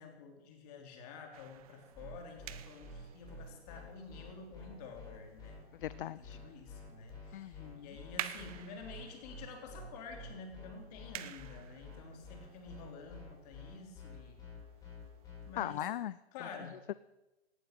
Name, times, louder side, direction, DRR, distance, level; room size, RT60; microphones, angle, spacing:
voice 1, 0.0-5.6 6.2-14.4 15.5-15.9 16.3-16.8, left 4 dB, 40° left, 3 dB, 3.5 m, -50 dB
sound 1, 1.3-15.5, right 13 dB, 35° right, 0.8 m, -51 dB
sound 2, 1.9-15.5, left 3 dB, 10° left, 6.9 m, -49 dB
voice 2, 5.7-6.4 7.3-8.0 15.6-16.2 16.6-16.9, left 12 dB, 55° left, 18 dB, 0.5 m, -40 dB
17.5 x 11.5 x 6.1 m, 1.0 s
hypercardioid pair, 140°, 32 cm